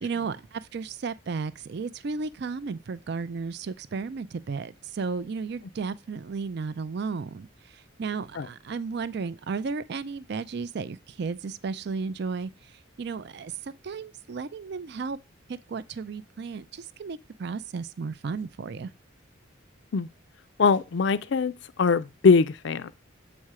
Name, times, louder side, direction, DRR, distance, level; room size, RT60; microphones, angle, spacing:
voice 1, 0.0-15.2 15.5-18.9, right 5 dB, 55° right, 0.4 m, -34 dB
voice 2, 20.6-21.5 21.8-22.9, left 5 dB, 60° left, 0.4 m, -22 dB
7.3 x 4.3 x 4.8 m
head